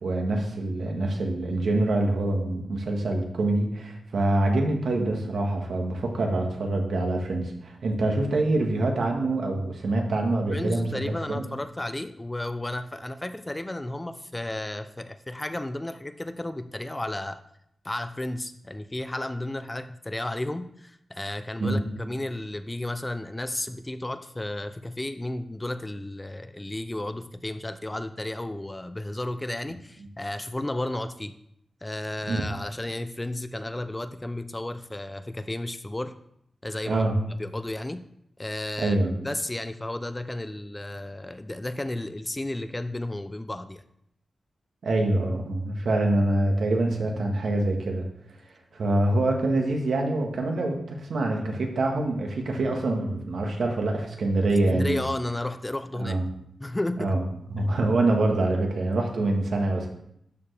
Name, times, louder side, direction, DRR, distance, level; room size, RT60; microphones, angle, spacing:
voice 1, 0.0-11.0 11.3-11.4 21.6-21.8 32.3-32.4 36.9-37.1 38.8-39.2 44.8-48.0 48.7-55.0 56.0-56.2 57.0-57.2 57.5-59.9, right 2 dB, 80° right, 2 dB, 1.5 m, -25 dB
voice 2, 10.5-17.4 17.8-31.3 31.8-36.1 36.6-37.1 37.4-38.0 38.4-39.0 39.2-43.8 54.7-56.2 56.6-57.2 57.6-57.7, left 1 dB, 15° left, 10 dB, 0.4 m, -33 dB
12.5 x 4.7 x 3.4 m, 0.74 s
wide cardioid pair, 95°, 0 cm